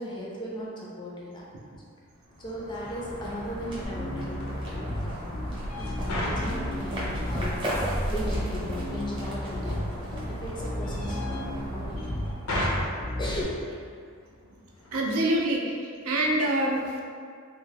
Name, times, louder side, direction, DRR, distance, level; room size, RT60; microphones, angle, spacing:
voice 1, 0.0-1.5 2.4-5.3 5.8-7.6 8.1-9.9 10.3-12.1 13.2-13.9, equal, 20° left, -4 dB, 0.4 m, -37 dB
sound 1, 2.2-13.0, equal, 20° right, 0.7 m, -36 dB
sound 2, 2.4-15.5, left 1 dB, 70° left, 0.5 m, -39 dB
Bass guitar, 3.8-13.4, equal, 90° left, 1.0 m, -34 dB
voice 2, 14.9-17.0, right 1 dB, 80° right, -1 dB, 0.5 m, -26 dB
3.1 x 2.1 x 3.3 m, 2.1 s
head